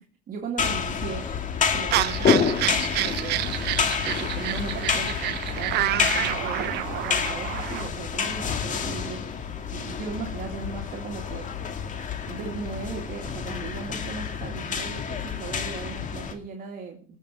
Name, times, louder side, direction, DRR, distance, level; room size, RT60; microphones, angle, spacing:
voice 1, 0.0-1.3 1.7-3.6 4.0-9.4 9.7-11.5 12.3-17.2, right 5 dB, 55° right, 1 dB, 2.3 m, -37 dB
sound 1, 0.6-16.3, left 6 dB, 50° left, 2.3 m, -28 dB
sound 2, 1.9-7.9, right 15 dB, 80° right, 0.8 m, -28 dB
18.5 x 7.1 x 6.2 m, 0.42 s
cardioid pair, 110°, 17 cm